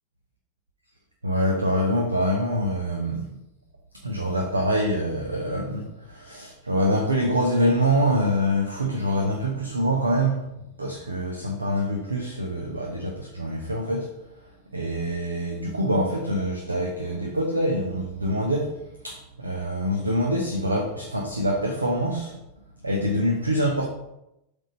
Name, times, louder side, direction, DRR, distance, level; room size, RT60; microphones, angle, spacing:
voice 1, 1.2-3.3 4.0-14.1 14.7-18.8 19.0-22.4 22.8-23.8, equal, 80° right, 1 dB, 0.8 m, -25 dB
7.5 x 3.5 x 4.1 m, 0.86 s
figure-of-eight pair, 90°, 0 cm